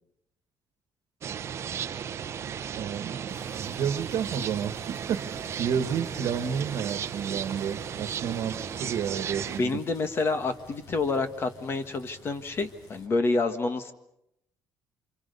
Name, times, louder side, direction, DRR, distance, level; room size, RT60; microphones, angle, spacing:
sound 1, 1.2-9.6, right 8 dB, 40° right, 0.8 m, -35 dB
voice 1, 2.7-9.8, right 8 dB, 60° right, 10 dB, 1.5 m, -31 dB
sound 2, 3.3-13.1, left 2 dB, 75° left, 7.6 m, -51 dB
voice 2, 9.6-13.9, left 3 dB, 35° left, 9 dB, 1.6 m, -28 dB
29.0 x 26.5 x 5.4 m, 0.81 s
cardioid pair, 150°, 7 cm